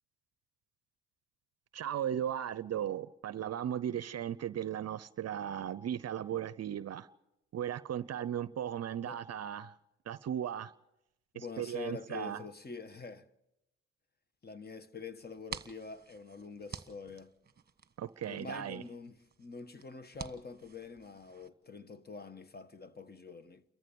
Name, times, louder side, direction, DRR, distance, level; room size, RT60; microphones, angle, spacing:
voice 1, 1.7-7.1 7.5-9.7 10.1-10.7 11.3-12.4 18.0-18.8, right 10 dB, 50° right, 0.7 m, -36 dB
voice 2, 11.3-13.3 14.4-17.3 18.2-23.6, left 4 dB, 30° left, 1.3 m, -46 dB
sound 1, 15.2-21.5, right 6 dB, 30° right, 1.4 m, -50 dB
29.0 x 14.0 x 7.0 m
supercardioid pair, 70°, 32 cm